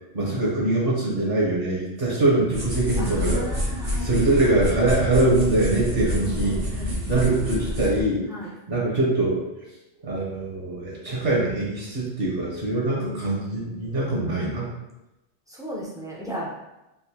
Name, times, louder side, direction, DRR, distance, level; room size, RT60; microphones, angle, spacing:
voice 1, 0.1-3.4 4.0-6.8 7.1-8.3 8.7-9.4 10.0-14.7, right 2 dB, 55° right, -5 dB, 1.1 m, -23 dB
sound 1, 2.5-8.0, left 1 dB, 85° right, 1.4 m, -28 dB
voice 2, 3.0-4.6 6.2-7.0 8.3-8.5 12.9-14.1 15.5-16.5, equal, 5° right, -5 dB, 0.3 m, -36 dB
3.7 x 2.5 x 2.8 m, 0.96 s
omnidirectional pair, 1.2 m